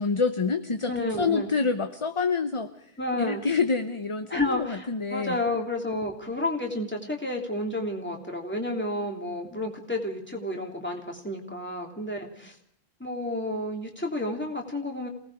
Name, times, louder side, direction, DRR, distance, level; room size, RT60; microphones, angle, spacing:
voice 1, 0.0-0.9 1.2-2.7 3.2-5.4, left 4 dB, 30° left, 9 dB, 0.9 m, -27 dB
voice 2, 0.9-1.5 3.0-3.4 4.3-12.6 13.0-15.1, left 1 dB, 10° left, 0 dB, 3.3 m, -31 dB
28.0 x 19.0 x 4.9 m, 0.65 s
omnidirectional pair, 1.1 m